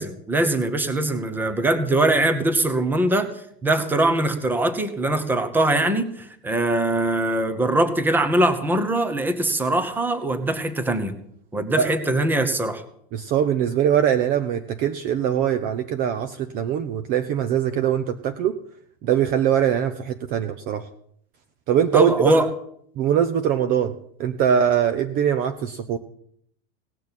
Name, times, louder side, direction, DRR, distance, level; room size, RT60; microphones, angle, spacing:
voice 1, 0.0-3.3 3.6-11.1 11.5-12.8 21.9-22.5, right 1 dB, 5° right, 11 dB, 1.0 m, -22 dB
voice 2, 13.1-18.6 19.0-20.9 21.7-22.1 23.0-26.0, right 9 dB, 30° right, 10 dB, 0.6 m, -22 dB
17.5 x 6.3 x 8.8 m, 0.67 s
supercardioid pair, 165°, 29 cm